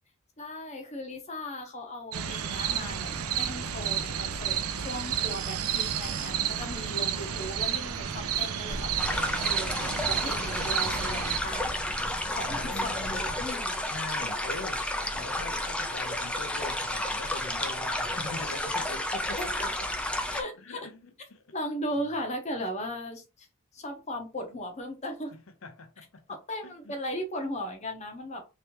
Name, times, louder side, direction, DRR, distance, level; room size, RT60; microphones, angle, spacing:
voice 1, 0.4-11.8 12.3-14.0 19.4-19.7 20.3-20.9 21.5-23.5 23.7-25.3 26.3-28.4, equal, 30° left, 0.8 m, -37 dB
sound 1, 2.1-11.4, right 9 dB, 80° right, 0.5 m, -31 dB
sound 2, 2.4-13.5, right 1 dB, 25° right, 0.7 m, -43 dB
sound 3, 9.0-20.4, left 1 dB, 5° left, 0.4 m, -31 dB
voice 2, 12.4-13.5 13.9-19.4 20.6-21.5 25.3-26.2 26.6-26.9, left 3 dB, 70° left, 0.7 m, -42 dB
3.3 x 3.0 x 2.9 m
head